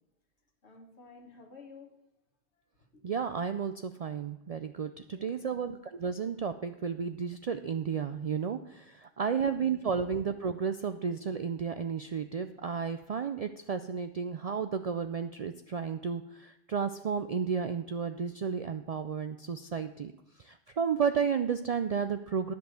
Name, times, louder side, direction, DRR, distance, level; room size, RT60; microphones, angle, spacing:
voice 1, 0.6-1.9 2.9-3.0 5.1-5.6 9.3-10.1, left 4 dB, 80° left, 3 dB, 1.7 m, -53 dB
voice 2, 3.0-20.1 20.4-22.5, right 6 dB, 60° right, 9 dB, 0.4 m, -32 dB
10.5 x 5.4 x 7.8 m, 0.84 s
omnidirectional pair, 1.1 m